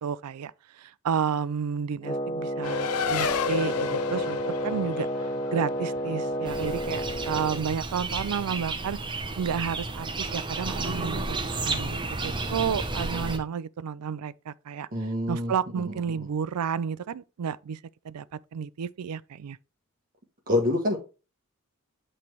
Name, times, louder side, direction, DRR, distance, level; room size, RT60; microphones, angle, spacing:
voice 1, 0.0-14.9 15.3-17.8 18.0-18.2 18.5-19.6, right 7 dB, 90° right, 0.4 m, -31 dB
Wind instrument woodwind instrument, 2.0-7.7, equal, 25° left, 0.5 m, -31 dB
Race car auto racing, 2.6-7.6, left 6 dB, 70° left, 0.5 m, -32 dB
sound 1, 6.4-13.4, right 3 dB, 20° right, 0.8 m, -32 dB
voice 2, 14.9-15.5 15.8-15.9 20.5-21.0, left 1 dB, 40° right, 1.1 m, -26 dB
8.4 x 3.3 x 4.5 m
head